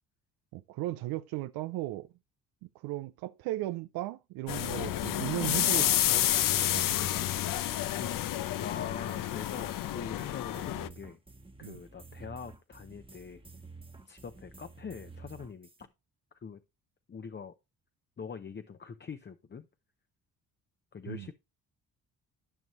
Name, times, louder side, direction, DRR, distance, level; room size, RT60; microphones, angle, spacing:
voice 1, 0.5-2.1 2.6-6.2 6.5-7.1 11.6-11.8 21.1-21.3, right 16 dB, 85° right, 0.5 m, -36 dB
sound 1, 4.5-10.9, left 13 dB, 65° left, 0.7 m, -29 dB
voice 2, 8.5-11.2 11.6-13.4 14.1-15.9 16.4-16.6 17.1-17.5 18.2-19.7 20.9-21.3, left 6 dB, 30° left, 0.7 m, -43 dB
sound 2, 8.8-15.9, right 3 dB, 15° right, 1.2 m, -51 dB
12.5 x 5.3 x 3.1 m
supercardioid pair, 70°, 35 cm